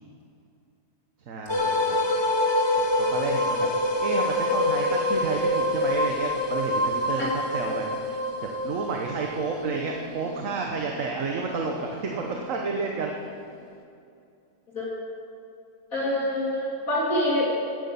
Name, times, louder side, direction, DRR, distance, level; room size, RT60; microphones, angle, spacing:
voice 1, 1.3-2.2 2.8-3.7 4.0-13.1, right 4 dB, 55° right, 1 dB, 1.4 m, -31 dB
sound 1, 1.5-12.7, left 1 dB, 20° left, 1.0 m, -26 dB
voice 2, 15.9-17.6, left 1 dB, 55° left, -6 dB, 3.5 m, -25 dB
16.0 x 9.9 x 7.0 m, 2.5 s
omnidirectional pair, 1.8 m